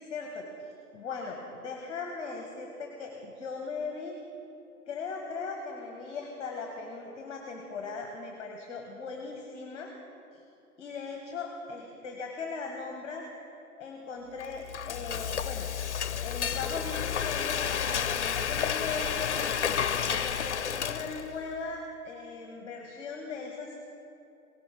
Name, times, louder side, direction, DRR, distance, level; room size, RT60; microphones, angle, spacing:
voice 1, 0.1-4.2 4.9-9.9 10.3-10.4 10.8-13.3 13.8-15.7 16.2-19.5 20.1-23.8, left 4 dB, 15° left, 2 dB, 1.1 m, -38 dB
Frying (food), 14.4-21.5, left 8 dB, 50° left, 0.5 m, -31 dB
18.5 x 6.8 x 3.7 m, 2.7 s
figure-of-eight pair, 140°, 44 cm